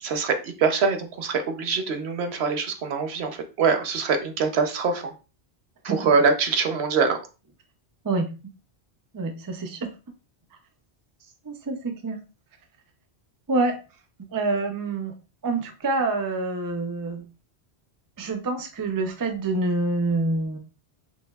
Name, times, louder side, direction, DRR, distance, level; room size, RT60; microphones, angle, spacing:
voice 1, 0.0-5.1 5.8-7.2, right 5 dB, 75° right, 5 dB, 1.0 m, -24 dB
voice 2, 9.1-9.9 11.4-12.2 13.5-13.8 14.3-15.1 15.4-17.3 18.2-20.6, right 3 dB, 30° right, 6 dB, 0.4 m, -26 dB
5.9 x 2.6 x 2.3 m, 0.32 s
omnidirectional pair, 1.1 m